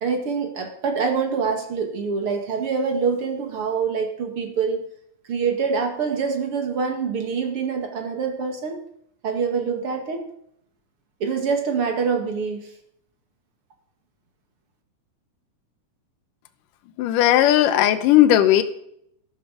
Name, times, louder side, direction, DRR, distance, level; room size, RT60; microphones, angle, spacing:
voice 1, 0.0-4.8 5.3-8.8 9.2-10.3 11.2-12.7, right 5 dB, 45° right, 4 dB, 2.5 m, -25 dB
voice 2, 17.0-18.6, left 12 dB, 80° left, 10 dB, 2.5 m, -16 dB
14.0 x 12.0 x 5.0 m, 0.70 s
omnidirectional pair, 3.8 m